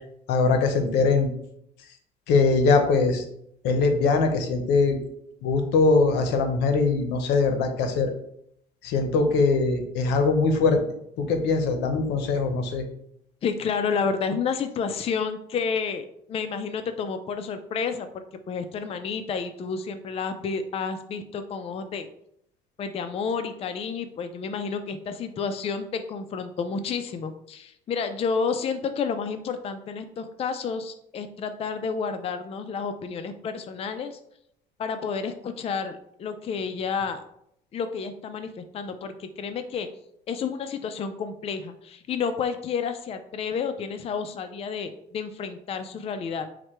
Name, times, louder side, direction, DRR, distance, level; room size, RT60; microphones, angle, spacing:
voice 1, 0.3-1.3 2.3-3.2 3.6-5.0 5.4-8.1 8.8-10.8 11.2-12.8, left 4 dB, 85° left, 6 dB, 0.7 m, -22 dB
voice 2, 13.4-22.1 22.8-34.2 34.8-37.2 37.7-39.9 40.3-46.5, left 5 dB, 35° left, 8 dB, 0.4 m, -30 dB
4.7 x 2.2 x 4.3 m, 0.73 s
cardioid pair, 110°, 17 cm